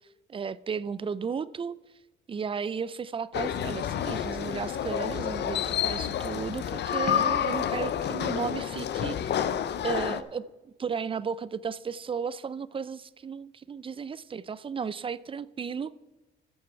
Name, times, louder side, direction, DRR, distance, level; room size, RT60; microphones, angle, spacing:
voice 1, 0.3-1.7 2.3-9.6 9.8-16.0, right 6 dB, 25° right, 0.4 m, -34 dB
sound 1, 3.3-10.2, left 9 dB, 60° left, 0.6 m, -29 dB
14.0 x 6.4 x 4.7 m
cardioid pair, 90°, 20 cm